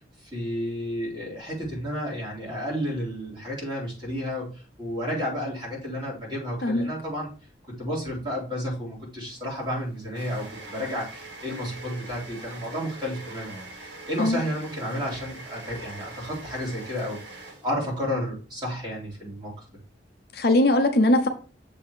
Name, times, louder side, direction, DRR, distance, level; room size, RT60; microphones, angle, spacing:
voice 1, 0.3-4.5 4.8-7.3 7.7-19.8, equal, 25° right, -4 dB, 3.7 m, -32 dB
sound 1, 9.3-18.0, right 3 dB, 70° right, 1.7 m, -43 dB
voice 2, 20.3-21.3, left 1 dB, 60° left, 5 dB, 0.9 m, -20 dB
6.9 x 3.8 x 4.9 m, 0.36 s
head